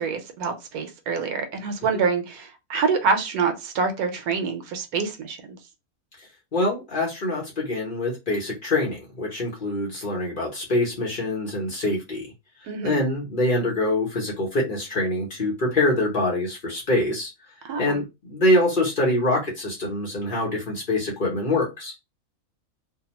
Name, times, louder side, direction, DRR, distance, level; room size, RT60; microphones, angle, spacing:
voice 1, 0.0-5.6 12.7-13.0 17.6-18.0, right 5 dB, 90° right, 1.2 m, -26 dB
voice 2, 6.5-12.3 12.8-17.3 17.8-18.0 18.3-21.9, left 1 dB, 40° left, 0.9 m, -24 dB
2.8 x 2.2 x 2.9 m
omnidirectional pair, 1.6 m